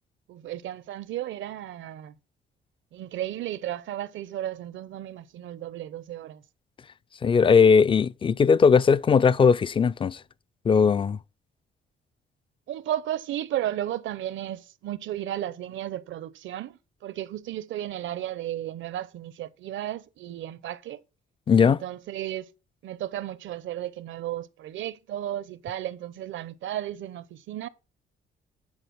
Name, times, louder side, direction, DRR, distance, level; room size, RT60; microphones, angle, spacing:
voice 1, 0.3-2.1 2.9-6.4 12.7-21.0 21.6-22.5 22.8-27.7, right 12 dB, 75° right, 0.7 m, -34 dB
voice 2, 7.2-10.2 10.6-11.2 21.5-21.8, left 6 dB, 25° left, 0.4 m, -19 dB
9.7 x 4.4 x 5.8 m
cardioid pair, 90°, 20 cm